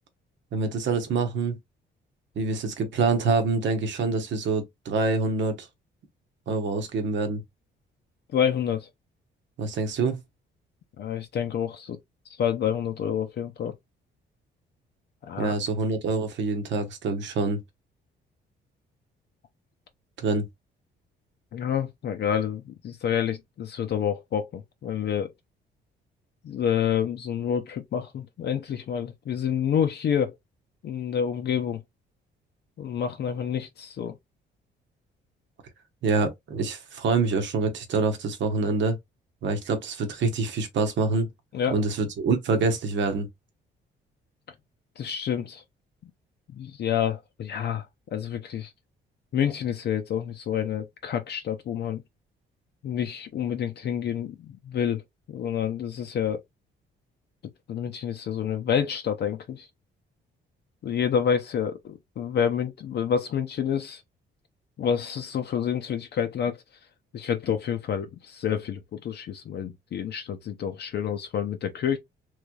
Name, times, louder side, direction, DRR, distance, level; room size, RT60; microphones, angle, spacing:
voice 1, 0.5-1.6 2.4-5.7 6.5-7.4 9.6-10.2 15.4-17.6 20.2-20.4 36.0-39.0 39.4-41.3 41.7-43.3, right 4 dB, 65° right, 1.0 m, -26 dB
voice 2, 8.3-8.9 11.0-12.0 12.3-13.7 15.2-15.5 21.5-25.3 26.4-30.3 30.8-31.8 32.8-34.2 41.5-41.8 45.0-45.6 46.5-47.9 48.1-48.7 49.3-52.0 52.8-55.0 55.3-56.4 57.7-59.7 60.8-64.0 64.8-66.6 67.1-72.0, left 8 dB, 60° left, 0.6 m, -28 dB
3.2 x 3.1 x 2.3 m
cardioid pair, 90°, 20 cm